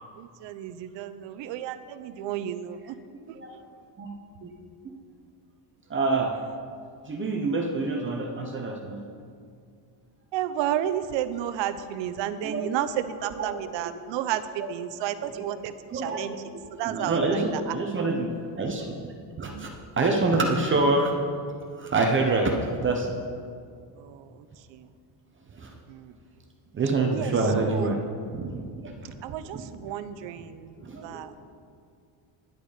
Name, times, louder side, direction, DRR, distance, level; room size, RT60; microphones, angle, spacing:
voice 1, 0.2-3.0 3.3-3.6 10.3-16.3 16.7-17.8 19.5-19.7 24.0-24.9 25.9-26.2 27.1-27.9 29.2-31.3, right 11 dB, 75° right, 12 dB, 0.8 m, -32 dB
voice 2, 5.9-6.4 7.0-9.0 12.4-12.6 13.2-13.5 15.9-16.2 16.8-21.2 21.8-23.1 25.5-25.7 26.7-28.0 28.3-29.1 29.5-29.6 30.8-31.2, right 3 dB, 25° right, 1 dB, 0.9 m, -26 dB
11.0 x 9.2 x 5.0 m, 2.2 s
cardioid pair, 150°, 45 cm